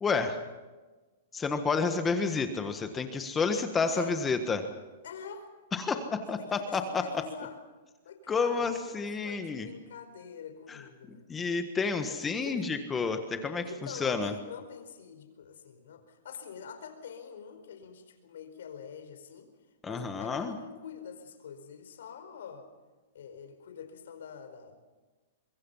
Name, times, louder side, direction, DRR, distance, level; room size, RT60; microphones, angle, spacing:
voice 1, 0.0-0.4 1.3-4.6 5.7-7.0 8.3-9.7 10.7-10.8 11.3-14.3 19.8-20.6, left 4 dB, 15° left, 7 dB, 1.5 m, -30 dB
voice 2, 3.8-4.2 5.0-5.5 6.4-7.6 8.0-11.3 12.1-12.6 13.6-19.5 19.8-22.7 23.1-24.8, left 7 dB, 80° left, 7 dB, 4.7 m, -45 dB
25.5 x 23.0 x 5.7 m, 1.2 s
hypercardioid pair, 150°, 0 cm